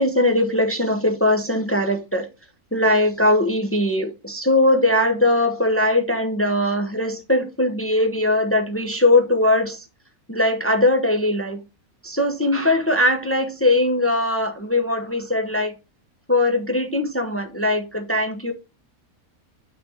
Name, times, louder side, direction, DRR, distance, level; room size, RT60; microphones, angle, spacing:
voice 1, 0.0-2.3 2.7-9.8 10.3-11.6 12.0-15.7 16.3-18.5, left 1 dB, 15° left, 5 dB, 0.6 m, -20 dB
5.8 x 3.5 x 5.6 m, 0.28 s
omnidirectional pair, 1.5 m